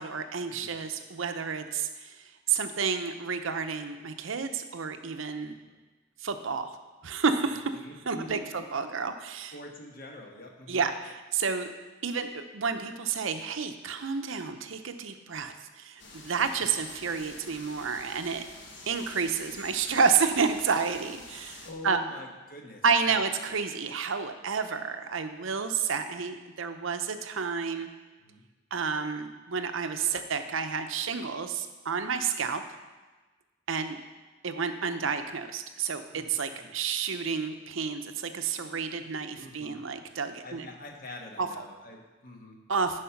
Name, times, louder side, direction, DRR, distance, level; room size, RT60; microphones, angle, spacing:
voice 1, 0.0-5.5 6.2-6.7 7.0-7.8 8.1-9.5 10.7-11.7 12.0-18.4 18.9-22.0 22.8-27.9 28.7-32.6 33.7-34.0 34.4-40.7 41.4-41.5 42.7-43.0, right 5 dB, 75° right, 8 dB, 0.7 m, -30 dB
voice 2, 7.8-8.6 9.5-10.9 21.6-23.2 28.2-28.5 36.1-36.3 36.6-36.7 39.4-39.8 40.4-42.6, left 1 dB, 45° left, 1 dB, 1.2 m, -45 dB
sound 1, 16.0-21.7, left 2 dB, 60° left, 1.3 m, -47 dB
10.0 x 5.0 x 5.8 m, 1.2 s
head